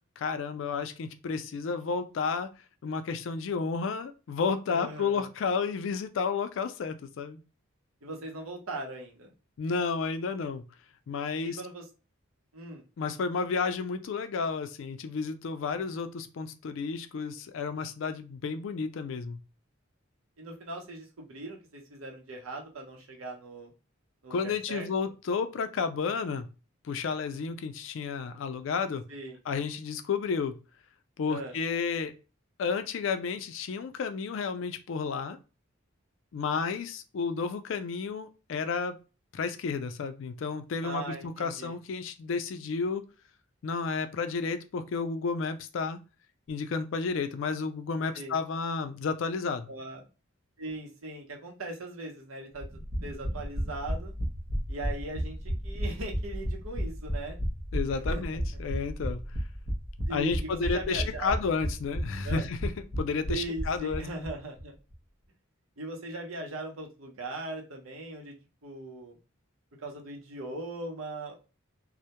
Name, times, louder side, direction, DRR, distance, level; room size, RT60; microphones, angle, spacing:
voice 1, 0.2-2.5 2.8-7.4 9.6-10.6 11.1-11.6 13.0-19.4 24.3-26.5 26.8-29.0 29.5-30.6 31.2-32.1 32.6-35.4 36.3-39.0 39.3-43.0 43.6-46.0 46.5-49.7 57.7-59.2 60.1-64.0, left 5 dB, 65° left, 9 dB, 0.3 m, -31 dB
voice 2, 4.7-5.3 8.0-9.3 11.4-11.8 12.5-12.8 20.4-23.7 24.2-24.9 29.1-29.4 31.3-31.6 40.8-41.8 48.1-48.3 49.7-50.0 50.6-52.7 53.0-54.1 54.7-57.4 58.1-58.4 60.1-61.4 62.2-62.5 63.3-64.8 65.8-68.3 68.6-69.1 69.8-71.4, right 2 dB, 85° right, 1 dB, 0.7 m, -39 dB
sound 1, 52.6-64.3 64.6-64.7 64.9-65.0, equal, 45° right, 0.7 m, -33 dB
2.1 x 2.1 x 2.8 m, 0.32 s
head